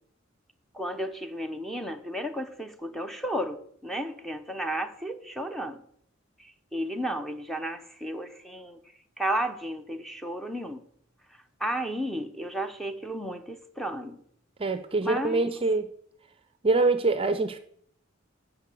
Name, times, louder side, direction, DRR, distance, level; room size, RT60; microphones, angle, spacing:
voice 1, 0.7-5.8 6.4-8.8 9.2-10.9 11.6-14.2 15.0-15.5, right 1 dB, ahead, 0.8 m, -33 dB
voice 2, 14.6-15.9 16.6-17.6, right 3 dB, 30° right, 0.6 m, -24 dB
13.0 x 4.9 x 8.4 m
head